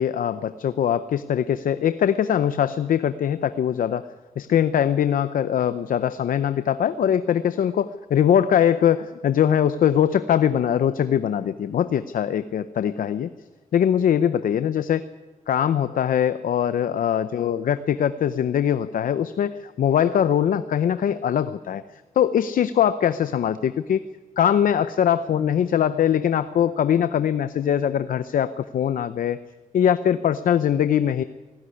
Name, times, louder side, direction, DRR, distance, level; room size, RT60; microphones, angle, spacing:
voice 1, 0.0-4.1 4.4-13.3 13.7-15.0 15.5-21.8 22.2-24.0 24.4-29.4 29.7-31.2, left 9 dB, 85° left, 12 dB, 0.7 m, -22 dB
19.5 x 16.0 x 9.8 m, 1.2 s
cardioid pair, 70°, 14 cm